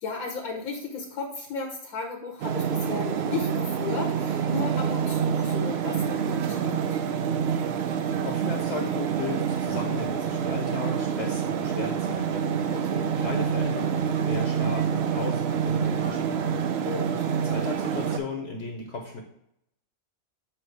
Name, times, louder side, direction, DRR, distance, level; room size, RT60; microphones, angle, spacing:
voice 1, 0.0-7.0 12.7-13.1 16.8-17.5, left 4 dB, 80° left, 1 dB, 1.3 m, -35 dB
sound 1, 2.4-18.2, right 7 dB, 65° right, 0.6 m, -27 dB
voice 2, 8.1-12.8 13.1-16.6 17.4-19.2, left 3 dB, 55° left, 2 dB, 1.0 m, -35 dB
7.5 x 2.8 x 4.6 m, 0.75 s
omnidirectional pair, 1.5 m